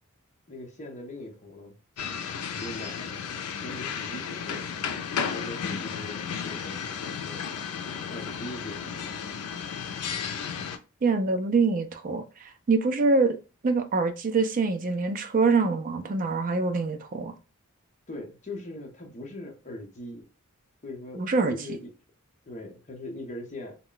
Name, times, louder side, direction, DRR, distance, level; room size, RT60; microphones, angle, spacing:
voice 1, 0.5-1.8 2.5-4.7 5.1-7.8 8.0-9.1 18.1-20.3 20.8-21.9 22.5-23.7, left 1 dB, 35° left, 0.7 m, -41 dB
sound 1, 2.0-10.8, left 7 dB, 90° left, 0.4 m, -33 dB
voice 2, 11.0-13.4 13.6-17.3 21.2-21.5, right 4 dB, 40° right, 0.4 m, -25 dB
2.3 x 2.1 x 3.7 m
head